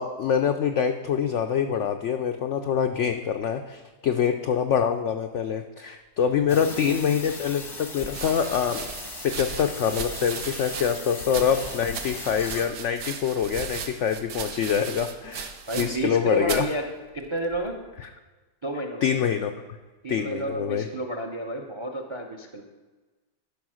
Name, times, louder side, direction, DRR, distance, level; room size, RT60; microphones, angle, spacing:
voice 1, 0.0-8.8 9.2-15.5 15.8-16.6 19.0-19.5 20.1-20.9, left 7 dB, 80° left, 7 dB, 0.6 m, -25 dB
sound 1, 6.5-12.7, left 3 dB, 25° left, 0.6 m, -38 dB
sound 2, 8.1-16.2 16.4-16.7 17.5-17.9, right 6 dB, 75° right, 1.4 m, -37 dB
voice 2, 15.7-16.9 17.1-17.8 18.6-19.1 20.0-22.6, right 1 dB, 40° right, 4 dB, 0.4 m, -31 dB
12.0 x 5.3 x 6.2 m, 1.2 s
omnidirectional pair, 1.8 m